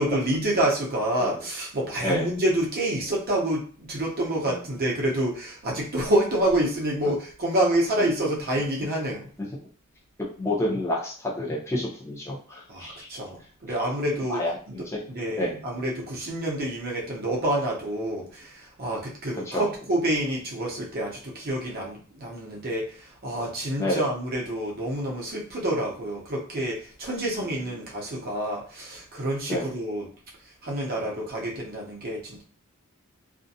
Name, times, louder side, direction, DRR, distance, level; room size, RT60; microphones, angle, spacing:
voice 1, 0.0-9.3 12.7-14.4 14.7-14.8 15.1-30.1 30.6-32.4, right 1 dB, 45° right, -3 dB, 0.7 m, -28 dB
voice 2, 2.0-2.3 4.4-4.6 7.0-7.1 8.0-8.1 9.4-9.5 10.4-13.1 14.3-15.0 15.3-15.6 19.4-19.7 23.8-24.1 27.4-27.5 29.5-29.7, left 1 dB, 15° left, -4 dB, 0.6 m, -29 dB
2.5 x 2.2 x 2.6 m, 0.43 s
head